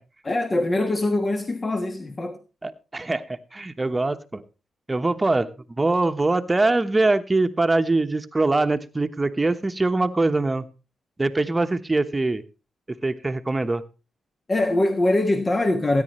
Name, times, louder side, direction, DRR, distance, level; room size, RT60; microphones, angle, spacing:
voice 1, 0.2-2.4 14.5-16.0, left 2 dB, 35° left, 1.4 m, -23 dB
voice 2, 2.6-4.4 4.9-5.5 5.8-10.6 11.2-12.4 13.0-13.8, right 2 dB, 25° right, 1.1 m, -23 dB
18.0 x 9.9 x 3.1 m
cardioid pair, 65°, 0 cm